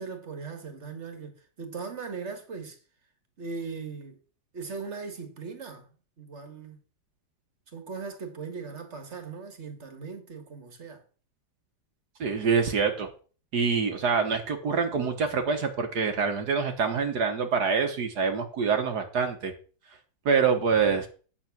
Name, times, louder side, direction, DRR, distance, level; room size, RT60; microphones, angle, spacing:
voice 1, 0.0-2.8 3.4-4.2 4.5-5.9 6.2-6.8 7.7-11.0, right 4 dB, 40° right, 1.8 m, -39 dB
voice 2, 12.2-13.1 13.5-19.5 20.2-21.1, right 5 dB, 60° right, 1.6 m, -25 dB
8.9 x 6.8 x 5.9 m
omnidirectional pair, 2.1 m